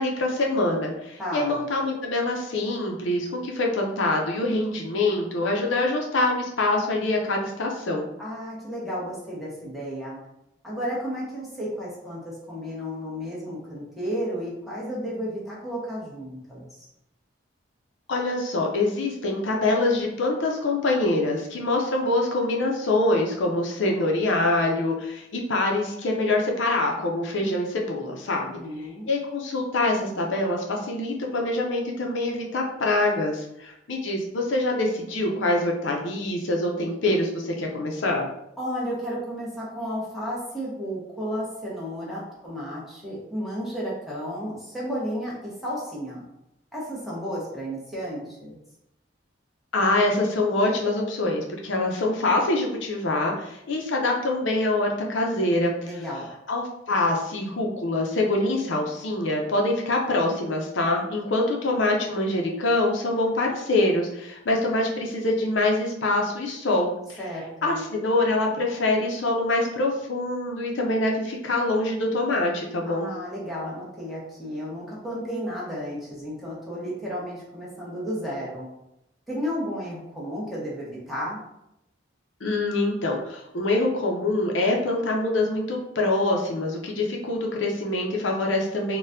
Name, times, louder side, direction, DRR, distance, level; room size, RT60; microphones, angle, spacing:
voice 1, 0.0-8.0 18.1-28.6 29.1-38.3 49.7-55.7 56.5-67.2 67.6-73.1 82.4-89.0, left 2 dB, 75° left, 0 dB, 0.5 m, -25 dB
voice 2, 1.2-1.6 8.2-10.2 10.6-16.9 28.4-29.1 38.6-46.2 46.7-48.6 55.8-56.3 67.2-67.8 72.8-78.6 79.3-81.4, equal, ahead, -7 dB, 1.0 m, -33 dB
4.1 x 2.2 x 2.5 m, 0.84 s
head